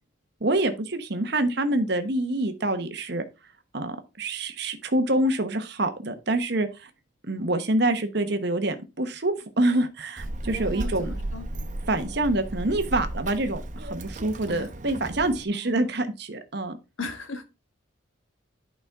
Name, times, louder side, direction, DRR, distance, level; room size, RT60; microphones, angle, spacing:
voice 1, 0.4-3.2 3.7-6.9 7.2-11.1 11.9-16.8, right 1 dB, 55° right, 1.1 m, -26 dB
Child speech kid speaking, 10.2-15.4, right 1 dB, 40° right, 0.8 m, -34 dB
voice 2, 10.8-11.5 14.5-14.7 15.5-15.9 17.0-17.5, left 2 dB, 80° left, 1.5 m, -37 dB
11.0 x 5.4 x 3.5 m
head